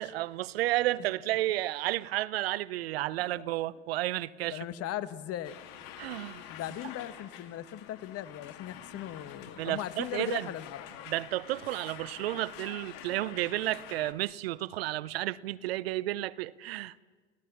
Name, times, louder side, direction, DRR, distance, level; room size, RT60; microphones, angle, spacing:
voice 1, 0.0-4.6 6.0-6.4 9.6-10.5 11.1-16.9, right 16 dB, 80° right, 0.7 m, -32 dB
voice 2, 4.5-5.6 6.5-10.9, left 12 dB, 50° left, 1.4 m, -38 dB
sound 1, 5.4-14.1, left 10 dB, 70° left, 2.0 m, -47 dB
29.5 x 16.5 x 7.2 m
hypercardioid pair, 80°, 30 cm